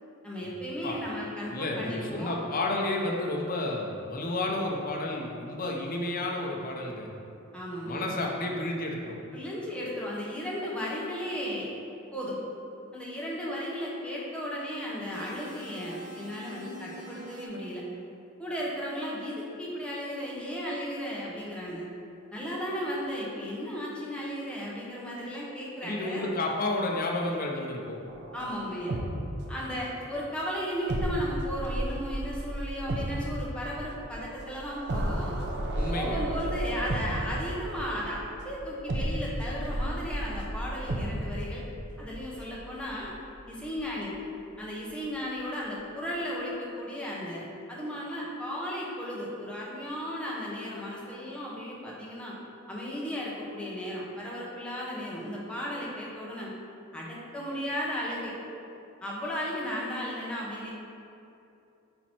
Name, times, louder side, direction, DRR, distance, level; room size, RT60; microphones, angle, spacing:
voice 1, 0.2-2.4 7.5-8.1 9.3-11.7 12.1-12.4 12.9-17.8 18.4-21.8 22.3-26.3 28.3-29.0 29.5-35.3 35.9-41.6 42.0-43.1 43.5-44.1 44.6-52.3 52.7-56.5 56.9-58.3 59.0-60.7, equal, 5° left, -6 dB, 1.1 m, -35 dB
voice 2, 1.5-7.1 7.8-9.2 25.8-28.0 35.7-36.2, left 2 dB, 40° left, 0 dB, 0.8 m, -31 dB
sound 1, 15.1-17.5, equal, 35° right, 1.1 m, -47 dB
sound 2, 28.1-29.9 30.1-30.2 30.9-43.3 43.7-43.8, right 1 dB, 55° right, 0.7 m, -33 dB
8.7 x 3.1 x 4.4 m, 2.7 s
head